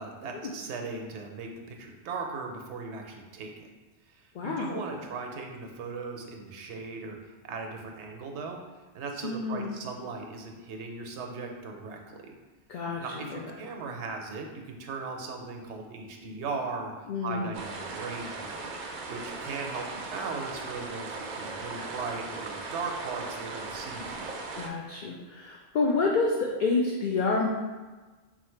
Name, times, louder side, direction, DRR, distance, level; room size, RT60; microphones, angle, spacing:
voice 1, 0.0-3.7 4.1-7.2 7.4-8.6 8.9-12.3 13.0-16.9 17.2-24.3, right 4 dB, 80° right, 3 dB, 0.9 m, -38 dB
voice 2, 4.3-5.0 9.2-9.8 12.7-13.5 17.1-17.6 24.5-27.5, left 3 dB, 60° left, -2 dB, 0.5 m, -29 dB
sound 1, 17.5-24.7, right 3 dB, 55° right, 0.5 m, -38 dB
4.2 x 2.4 x 4.4 m, 1.3 s
omnidirectional pair, 1.1 m